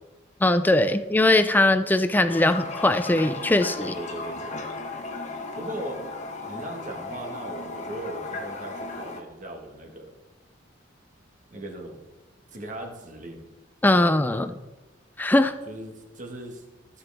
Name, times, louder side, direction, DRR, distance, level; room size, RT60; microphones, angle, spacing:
voice 1, 0.4-3.9 13.8-14.5 15.2-15.5, left 2 dB, 10° left, 10 dB, 0.3 m, -20 dB
Toilet flush, 2.3-9.2, left 3 dB, 40° left, 1.0 m, -36 dB
voice 2, 3.8-4.6 5.5-6.1 6.4-10.1 11.5-12.0 12.5-13.4 15.7-16.6, right 1 dB, 40° right, 3 dB, 1.5 m, -38 dB
14.0 x 7.0 x 3.5 m, 1.1 s
head